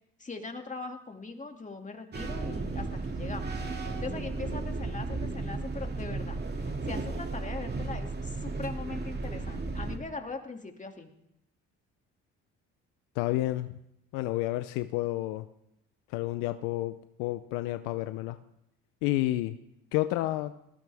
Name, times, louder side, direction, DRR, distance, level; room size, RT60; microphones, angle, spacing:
voice 1, 0.2-3.5 4.0-11.1, left 3 dB, 25° left, 4 dB, 2.4 m, -41 dB
sound 1, 2.1-10.0, right 3 dB, 30° right, 2.4 m, -34 dB
voice 2, 13.2-13.7 14.1-15.5 16.1-18.4 19.0-19.6 19.9-20.5, left 16 dB, 85° left, 11 dB, 0.7 m, -30 dB
20.5 x 15.0 x 3.5 m, 0.82 s
supercardioid pair, 70°, 31 cm